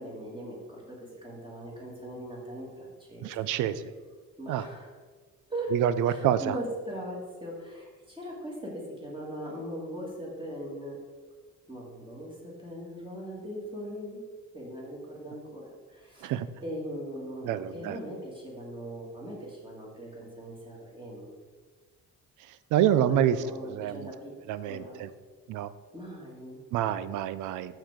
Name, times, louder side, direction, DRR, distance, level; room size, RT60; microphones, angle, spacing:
voice 1, 0.0-3.3 3.7-3.8 4.4-4.9 5.5-11.0 11.7-14.2 14.5-16.3 16.6-21.3 22.8-25.0 25.9-26.6, equal, 15° right, -4 dB, 2.1 m, -40 dB
voice 2, 3.2-3.9 4.5-4.7 5.7-6.6 16.2-16.5 17.4-18.0 22.7-23.4 23.6-24.1 24.5-25.1 25.5-25.7 26.7-27.8, right 11 dB, 90° right, 14 dB, 0.5 m, -27 dB
5.7 x 5.6 x 4.9 m, 1.5 s
cardioid pair, 90°, 30 cm